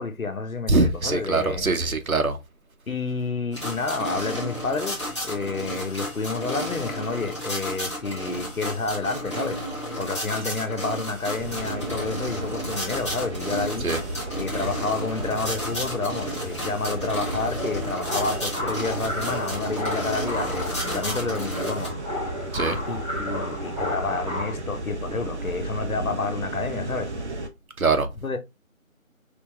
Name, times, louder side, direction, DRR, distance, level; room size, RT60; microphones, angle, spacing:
voice 1, 0.0-1.7 2.9-9.6 10.0-13.9 14.4-21.9 22.9-27.1 28.2-28.4, left 3 dB, 85° left, 1.2 m, -29 dB
voice 2, 0.7-2.4 13.8-14.0 22.5-22.8 27.8-28.1, right 3 dB, 80° right, 1.1 m, -22 dB
sound 1, 3.5-21.9, equal, 20° left, 1.2 m, -33 dB
sound 2, 11.4-27.5, right 2 dB, 55° right, 0.9 m, -34 dB
sound 3, 17.5-24.5, left 1 dB, 25° right, 1.9 m, -33 dB
4.4 x 3.5 x 3.2 m
figure-of-eight pair, 170°, 41 cm